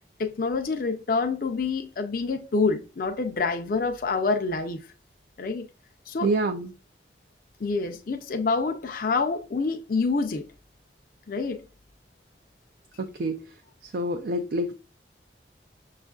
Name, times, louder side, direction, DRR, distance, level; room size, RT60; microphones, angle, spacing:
voice 1, 0.2-4.8 5.4-5.7 6.1-6.3 7.6-10.5 11.3-11.6, left 4 dB, 50° left, 0.4 m, -27 dB
voice 2, 6.2-6.8 13.0-13.5 13.8-14.8, right 2 dB, 55° right, 0.3 m, -27 dB
6.2 x 2.4 x 2.3 m
head